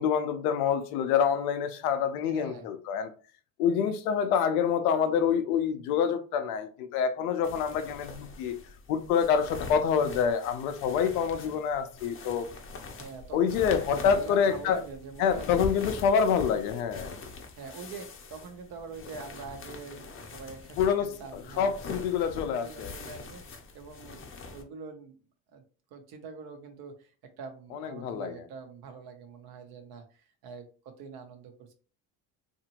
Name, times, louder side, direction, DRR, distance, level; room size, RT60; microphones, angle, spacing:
voice 1, 0.0-3.1 3.6-8.6 8.9-12.5 13.3-14.8 15.2-17.1 20.8-22.9 27.7-28.4, left 7 dB, 85° left, 0.6 m, -27 dB
voice 2, 2.3-2.7 13.0-13.6 13.9-15.7 17.6-25.1 25.5-25.6 25.9-27.1 27.4-31.7, right 5 dB, 60° right, 0.9 m, -45 dB
sound 1, 7.4-24.6, left 4 dB, 30° left, 0.6 m, -43 dB
2.8 x 2.6 x 2.9 m
supercardioid pair, 85°, 43 cm